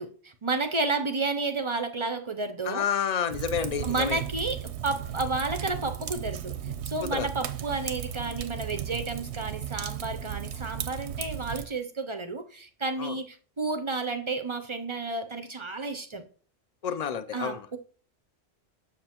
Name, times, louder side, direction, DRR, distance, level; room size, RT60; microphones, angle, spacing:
voice 1, 0.0-2.8 3.8-16.2 17.3-17.8, right 3 dB, 40° right, 0.5 m, -31 dB
voice 2, 2.7-4.2 7.1-7.3 13.0-13.1 16.8-17.7, left 8 dB, 50° left, 0.5 m, -29 dB
Fire, 3.3-11.6, right 9 dB, 90° right, 1.0 m, -35 dB
7.3 x 6.4 x 2.9 m
omnidirectional pair, 1.1 m